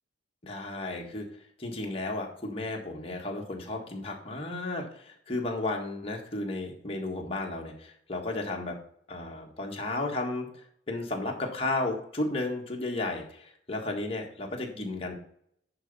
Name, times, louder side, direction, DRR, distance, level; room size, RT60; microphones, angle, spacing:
voice 1, 0.4-1.3 1.6-8.8 9.1-10.5 10.9-15.1, left 2 dB, 30° left, 0 dB, 1.6 m, -33 dB
10.5 x 4.0 x 5.4 m, 0.67 s
head